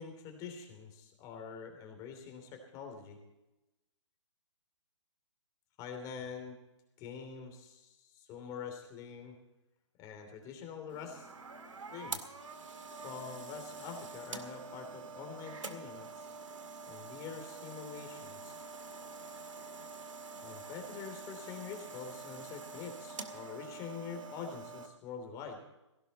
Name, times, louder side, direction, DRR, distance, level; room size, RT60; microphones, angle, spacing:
voice 1, 0.0-3.2 5.8-6.6 7.0-9.3 10.0-11.3 11.9-12.2 13.0-16.3 16.9-18.5 20.4-25.6, left 6 dB, 25° left, 4 dB, 3.1 m, -45 dB
sound 1, 10.9-24.9, right 4 dB, 85° right, 2.0 m, -46 dB
17.0 x 16.5 x 4.2 m, 0.98 s
hypercardioid pair, 145°, 16 cm